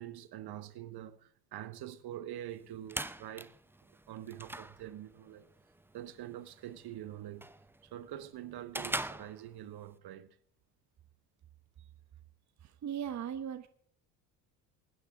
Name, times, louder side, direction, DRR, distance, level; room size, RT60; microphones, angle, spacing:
voice 1, 0.0-3.5 4.1-5.5 5.9-7.5 7.8-10.4, right 12 dB, 55° right, 1.4 m, -45 dB
sound 1, 2.5-10.0, right 2 dB, 5° right, 0.7 m, -44 dB
voice 2, 12.6-13.7, right 9 dB, 35° right, 1.1 m, -38 dB
23.0 x 9.9 x 3.6 m
hypercardioid pair, 70°, 47 cm